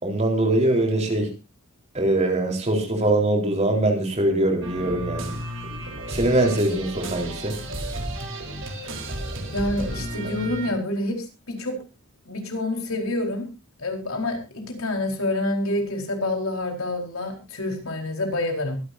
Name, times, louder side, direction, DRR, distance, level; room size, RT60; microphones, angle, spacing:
voice 1, 0.0-1.3 1.9-5.4 6.1-7.5, right 1 dB, 30° right, 2 dB, 4.1 m, -22 dB
sound 1, 4.6-10.7, right 1 dB, 60° right, 4.4 m, -33 dB
voice 2, 9.5-11.8 12.2-13.5 13.8-18.8, left 1 dB, 70° left, 3 dB, 4.5 m, -27 dB
23.5 x 11.5 x 2.7 m, 0.28 s
head